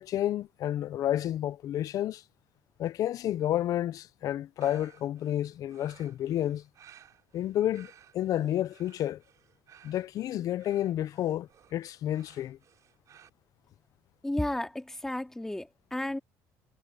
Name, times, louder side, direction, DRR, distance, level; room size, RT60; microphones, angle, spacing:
voice 1, 0.0-2.2 2.8-6.6 7.3-9.2 9.8-12.6, left 12 dB, 55° left, 0.6 m, -30 dB
sound 1, 4.6-13.3, right 10 dB, 50° right, 6.6 m, -58 dB
voice 2, 14.2-16.2, left 1 dB, 5° left, 2.3 m, -33 dB
cardioid pair, 130°, 7 cm